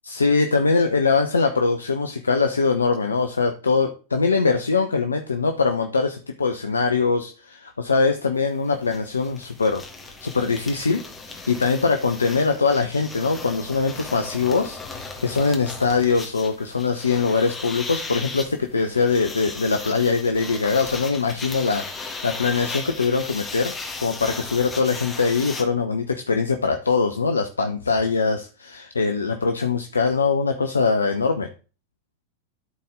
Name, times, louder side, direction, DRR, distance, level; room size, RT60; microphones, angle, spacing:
voice 1, 0.0-9.8 10.2-11.0 11.3-23.7 24.0-31.5, left 4 dB, 75° left, 5 dB, 0.7 m, -22 dB
sound 1, 8.4-8.5 8.7-25.6, left 3 dB, 15° left, 1.7 m, -36 dB
12.5 x 4.2 x 3.8 m, 0.34 s
figure-of-eight pair, 90°, 0 cm